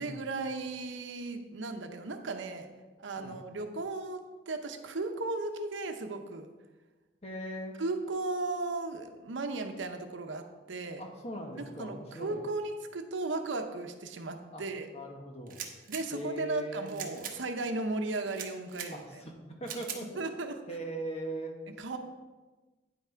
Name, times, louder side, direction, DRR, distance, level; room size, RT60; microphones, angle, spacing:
voice 1, 0.0-2.7 3.0-4.2 4.5-6.5 7.8-11.0 11.8-14.9 15.9-19.0 20.2-20.6 21.8-22.0, right 3 dB, 80° right, 6 dB, 0.8 m, -35 dB
voice 2, 7.2-7.8 11.0-12.5 14.5-14.7 14.9-15.6 16.1-16.9 18.9-20.2 20.7-21.6, right 1 dB, 35° left, 2 dB, 1.1 m, -40 dB
sound 1, 15.5-16.0 16.9-17.4 18.3-18.9 19.6-20.0, right 8 dB, 45° right, 0.9 m, -41 dB
9.3 x 5.9 x 4.5 m, 1.2 s
head